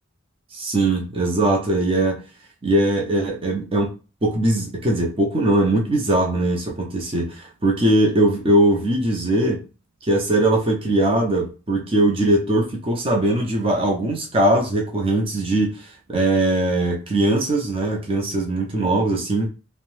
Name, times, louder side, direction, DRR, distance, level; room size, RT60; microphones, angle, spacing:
voice 1, 0.5-2.2 2.6-3.9 4.2-9.6 10.1-19.5, right 1 dB, 25° right, 0 dB, 0.5 m, -20 dB
2.7 x 2.1 x 3.1 m, 0.32 s
head